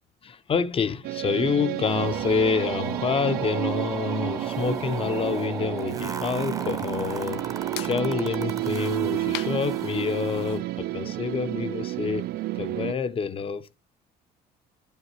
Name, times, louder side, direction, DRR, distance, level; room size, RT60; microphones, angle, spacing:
voice 1, 0.2-7.4 7.8-12.3 12.5-13.7, left 6 dB, 35° left, 0.7 m, -27 dB
sound 1, 1.0-12.9, right 16 dB, 65° right, 0.4 m, -30 dB
sound 2, 1.9-10.6, right 4 dB, 20° right, 0.7 m, -37 dB
sound 3, 5.5-10.6, left 13 dB, 85° left, 0.6 m, -44 dB
11.0 x 5.4 x 3.0 m
cardioid pair, 110°, 17 cm